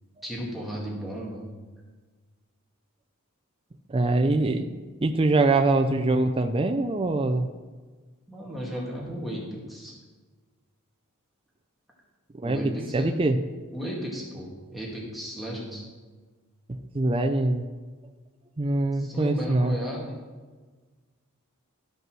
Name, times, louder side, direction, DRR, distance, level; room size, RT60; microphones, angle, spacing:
voice 1, 0.2-1.5 8.3-9.9 12.4-13.1 13.7-15.8 18.9-20.2, equal, ahead, -5 dB, 2.0 m, -34 dB
voice 2, 3.9-7.5 12.4-13.4 16.7-17.6 18.6-19.8, right 2 dB, 25° right, 6 dB, 0.4 m, -24 dB
12.5 x 5.4 x 6.1 m, 1.4 s
head